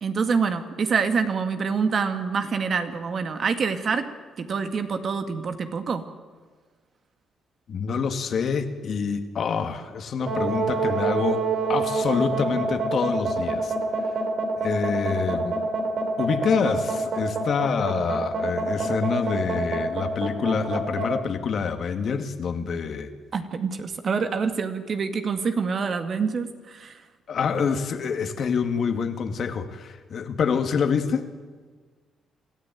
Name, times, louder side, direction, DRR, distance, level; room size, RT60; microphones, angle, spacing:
voice 1, 0.0-6.1 23.3-27.0, right 5 dB, 50° right, 8 dB, 2.1 m, -26 dB
voice 2, 7.7-13.7 14.6-15.5 16.2-23.1 27.3-31.3, left 6 dB, 55° left, 7 dB, 2.1 m, -26 dB
sound 1, 10.2-21.1, right 4 dB, 65° right, 4.0 m, -26 dB
26.0 x 14.0 x 9.2 m, 1.5 s
cardioid pair, 90°, 0 cm